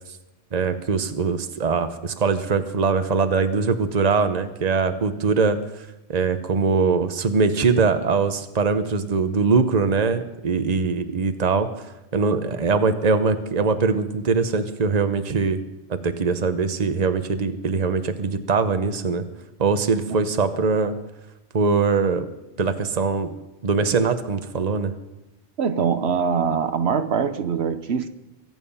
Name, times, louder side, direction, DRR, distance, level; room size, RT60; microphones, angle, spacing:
voice 1, 0.5-5.6 6.1-11.7 12.1-15.6 15.9-19.3 19.6-20.9 21.5-22.3 22.6-23.3 23.6-24.9, right 4 dB, 40° right, 1.0 m, -22 dB
voice 2, 25.6-28.1, right 6 dB, 75° right, 1.1 m, -23 dB
23.5 x 9.3 x 5.6 m
omnidirectional pair, 1.1 m